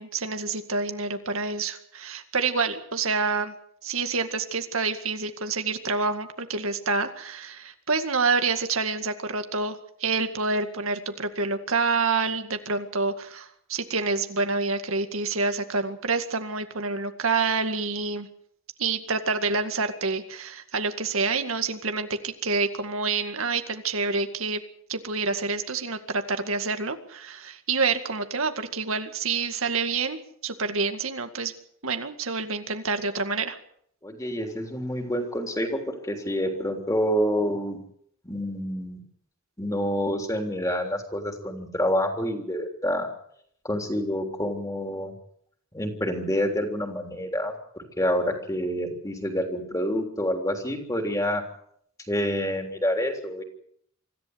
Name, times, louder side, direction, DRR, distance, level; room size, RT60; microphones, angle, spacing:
voice 1, 0.0-3.5 3.8-18.3 18.8-24.6 24.9-31.5 31.8-33.6, right 4 dB, 85° right, 7 dB, 2.1 m, -27 dB
voice 2, 34.0-37.8 38.2-39.0 39.6-43.1 43.6-45.1 45.7-51.4 52.1-53.4, equal, 15° left, 4 dB, 3.4 m, -28 dB
25.0 x 14.5 x 8.1 m, 0.68 s
head